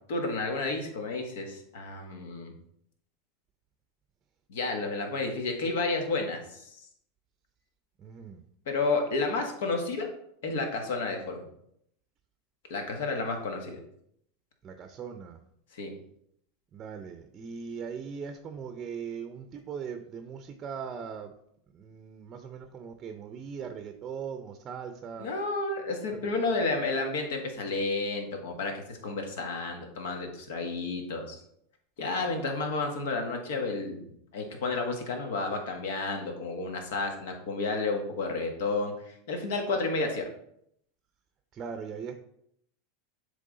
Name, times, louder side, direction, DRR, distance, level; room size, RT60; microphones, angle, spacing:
voice 1, 0.1-2.5 4.5-6.8 8.7-10.1 10.4-11.4 12.7-13.8 15.7-15.9 25.2-31.4 32.0-34.0 34.3-40.3, left 3 dB, 75° left, 4 dB, 1.4 m, -31 dB
voice 2, 8.0-8.4 14.6-15.4 16.7-21.3 21.7-25.3 41.5-42.1, right 6 dB, 35° right, 7 dB, 0.5 m, -39 dB
7.4 x 3.5 x 3.9 m, 0.72 s
supercardioid pair, 120°, 0 cm